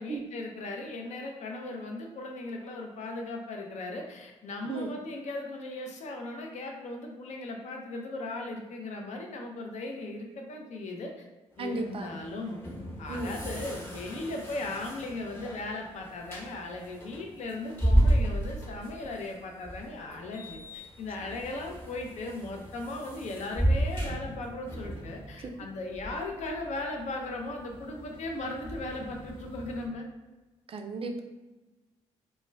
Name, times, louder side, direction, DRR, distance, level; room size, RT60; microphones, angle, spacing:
voice 1, 0.0-11.3 11.6-12.6 13.0-30.1, left 2 dB, 50° left, 2 dB, 0.5 m, -37 dB
sound 1, 11.5-29.9, right 1 dB, 15° left, 0.9 m, -33 dB
voice 2, 11.6-12.1 13.1-13.4 25.4-25.5 30.7-31.2, right 3 dB, 40° right, 5 dB, 0.4 m, -34 dB
2.2 x 2.1 x 3.3 m, 1.1 s
hypercardioid pair, 40°, 15 cm